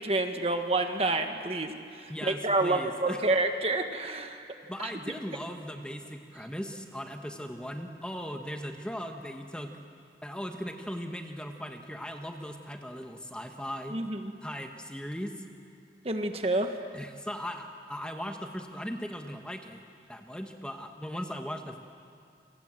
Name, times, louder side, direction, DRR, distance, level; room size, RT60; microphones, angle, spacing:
voice 1, 0.0-1.7 2.0-4.4 13.9-14.2 16.0-16.7, right 2 dB, 35° right, 5 dB, 1.6 m, -28 dB
voice 2, 2.1-3.3 4.7-9.7 10.2-14.0 14.4-15.4 16.9-19.8 20.1-21.8, equal, 5° left, 4 dB, 1.3 m, -38 dB
29.0 x 26.5 x 7.6 m, 2.3 s
head